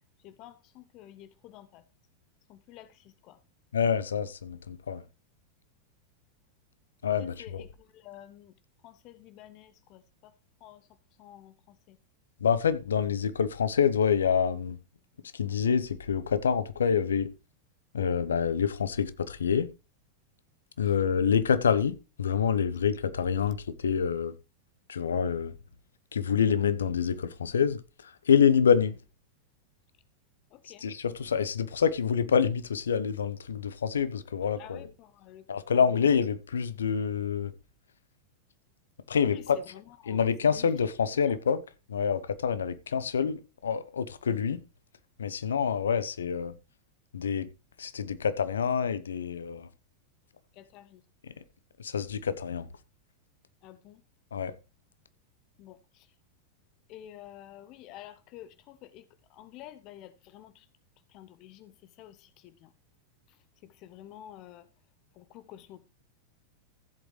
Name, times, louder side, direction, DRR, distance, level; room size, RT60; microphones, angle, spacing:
voice 1, 0.2-1.8 2.5-3.4 7.2-8.5 8.8-10.3 10.6-10.9 11.2-12.0 26.3-26.4 30.5-30.8 34.6-35.5 39.3-40.7 41.3-41.4 50.5-51.0 53.6-54.0 55.6-56.1 56.9-59.0 59.3-60.7 61.1-62.7 63.3-63.4 63.6-64.7 65.1-65.8, left 12 dB, 40° left, 0.6 m, -50 dB
voice 2, 3.7-5.0 7.0-7.6 12.4-14.8 15.3-17.3 17.9-19.7 20.8-24.3 24.9-25.5 26.1-28.9 30.8-34.9 35.5-37.5 39.1-39.6 40.1-41.6 41.9-44.6 45.2-46.5 47.1-47.5 47.8-49.7 51.2-51.3 51.8-52.7 54.3-54.6, left 7 dB, 70° left, 0.8 m, -27 dB
15.0 x 8.0 x 3.2 m
figure-of-eight pair, 90°, 0 cm